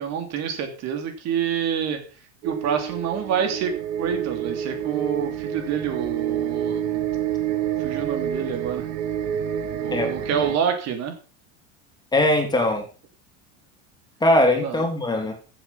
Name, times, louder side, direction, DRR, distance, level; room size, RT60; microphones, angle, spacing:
voice 1, 0.0-2.0 2.4-3.7 4.0-7.0 7.8-8.9 9.8-11.1 14.6-14.8, right 8 dB, 50° right, 6 dB, 2.9 m, -27 dB
sound 1, 2.4-10.6, right 9 dB, 80° right, 1.7 m, -28 dB
voice 2, 12.1-12.8 14.2-15.3, left 1 dB, 10° left, 4 dB, 3.2 m, -20 dB
14.5 x 7.6 x 5.7 m, 0.37 s
supercardioid pair, 135°, 35 cm